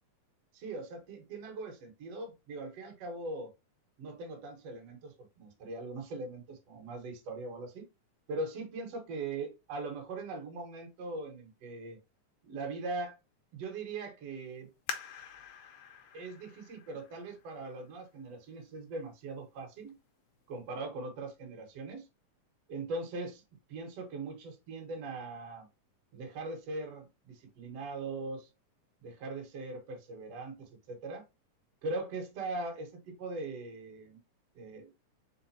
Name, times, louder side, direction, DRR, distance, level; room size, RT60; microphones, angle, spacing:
voice 1, 0.5-3.5 4.0-7.9 8.3-12.0 12.4-13.2 13.5-14.7 16.1-20.0 20.5-22.1 22.7-23.4 23.7-25.7 26.1-28.5 29.0-31.2 31.8-34.2 34.6-34.9, right 2 dB, 60° right, 2.0 m, -40 dB
sound 1, 14.9-18.2 18.8-18.9 19.6-19.9 20.3-20.4, left 8 dB, 75° left, 1.6 m, -45 dB
5.1 x 3.8 x 2.7 m
omnidirectional pair, 3.6 m